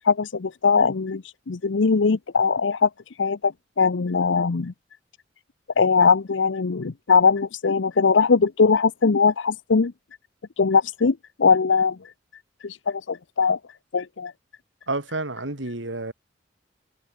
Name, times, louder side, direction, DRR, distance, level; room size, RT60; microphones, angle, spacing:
voice 1, 0.0-2.9 3.2-3.5 3.8-4.7 5.8-9.9 10.6-12.0 12.6-13.6 13.9-14.3, left 5 dB, 85° left, 0.7 m, -20 dB
voice 2, 14.9-16.1, right 2 dB, 85° right, 3.5 m, -29 dB
head